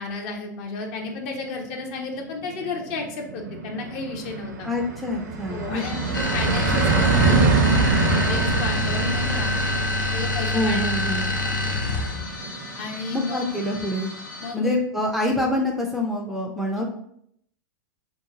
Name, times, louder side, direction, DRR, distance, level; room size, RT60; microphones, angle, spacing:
voice 1, 0.0-4.7 5.5-9.5 10.1-10.8 11.4-11.7 12.8-13.6 14.4-14.7 16.8-16.9, left 3 dB, 45° left, 2 dB, 0.7 m, -33 dB
sound 1, 1.4-1.5 1.9-2.0 2.2-13.6, right 4 dB, 65° right, 0.6 m, -25 dB
voice 2, 4.6-5.8 10.5-11.3 13.1-14.1 14.5-16.8, left 1 dB, ahead, -1 dB, 0.4 m, -26 dB
sound 2, 5.7-14.5, left 2 dB, 65° left, 1.0 m, -38 dB
sound 3, 6.1-12.3, left 2 dB, 85° left, 0.5 m, -26 dB
3.0 x 2.2 x 3.7 m, 0.70 s
figure-of-eight pair, 100°, 10 cm